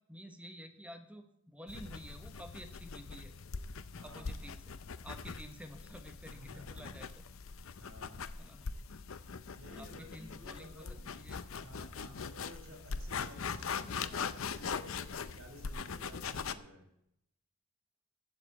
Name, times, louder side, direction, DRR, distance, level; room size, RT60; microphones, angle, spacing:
voice 1, 0.1-3.3 4.0-4.8 5.0-7.1 8.4-8.7 9.7-11.7, equal, 5° right, 6 dB, 1.1 m, -51 dB
sound 1, 1.7-16.5, left 5 dB, 70° left, 0.6 m, -42 dB
voice 2, 3.8-4.4 6.2-7.0 7.8-8.2 9.5-11.1 11.5-16.9, equal, 75° right, 2 dB, 4.3 m, -54 dB
14.5 x 5.0 x 8.4 m, 0.77 s
head